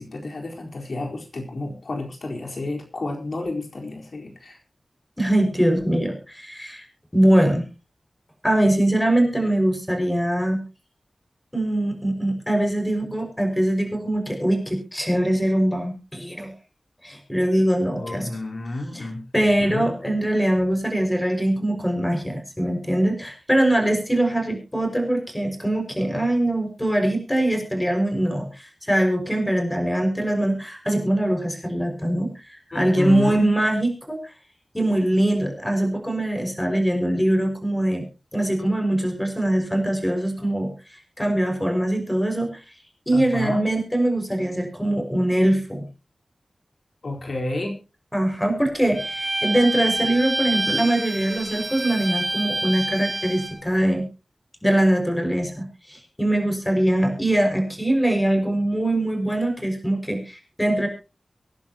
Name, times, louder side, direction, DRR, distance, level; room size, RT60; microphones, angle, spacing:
voice 1, 0.0-4.6 18.0-19.9 32.7-33.5 43.1-43.7 47.0-47.8, left 2 dB, 70° left, 1 dB, 4.1 m, -30 dB
voice 2, 5.2-6.8 7.1-7.7 8.4-10.6 11.5-16.5 17.0-18.3 18.9-19.1 19.3-34.2 34.7-38.0 38.3-40.7 41.2-42.5 43.1-45.9 48.1-54.1 54.6-60.9, right 1 dB, 10° left, 3 dB, 5.7 m, -22 dB
Bowed string instrument, 48.9-53.6, right 2 dB, 35° right, 4.8 m, -27 dB
25.0 x 10.5 x 2.9 m, 0.31 s
wide cardioid pair, 80°, 0 cm